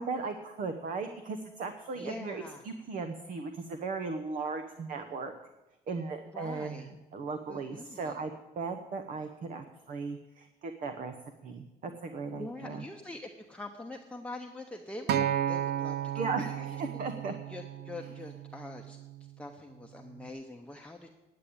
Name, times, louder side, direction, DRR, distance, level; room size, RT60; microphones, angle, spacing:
voice 1, 0.0-5.3 5.9-11.1 11.4-12.8 16.2-17.3, right 4 dB, 50° right, 8 dB, 1.0 m, -37 dB
voice 2, 1.9-2.6 6.3-6.9 7.5-8.2 12.3-17.0 17.5-19.0 19.4-21.1, left 2 dB, 5° left, 1 dB, 0.9 m, -44 dB
Acoustic guitar, 15.1-19.4 20.2-20.3, right 10 dB, 70° right, 0.6 m, -34 dB
9.6 x 8.7 x 8.7 m, 1.0 s
cardioid pair, 110°, 17 cm